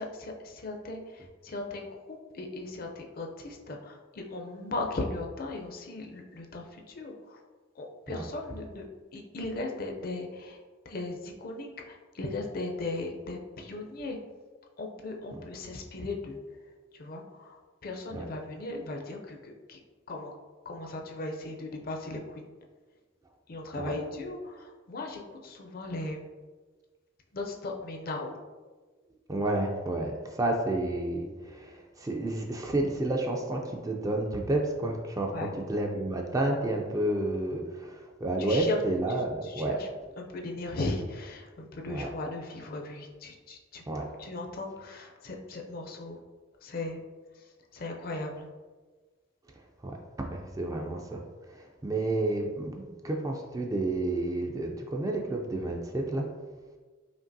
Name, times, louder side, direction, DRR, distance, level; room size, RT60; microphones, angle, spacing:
voice 1, 0.0-7.4 7.7-8.9 9.1-14.2 14.8-19.8 20.1-20.3 20.6-22.5 23.5-26.3 27.3-28.3 35.3-35.5 38.4-38.8 39.1-39.9 40.2-43.8 44.2-46.2 46.6-47.0 47.3-48.5, left 2 dB, 50° left, 1 dB, 0.5 m, -37 dB
voice 2, 29.3-39.8 41.9-42.1 43.9-44.1 49.8-56.3, right 2 dB, 15° right, 1 dB, 0.3 m, -30 dB
5.1 x 2.8 x 2.6 m, 1.4 s
head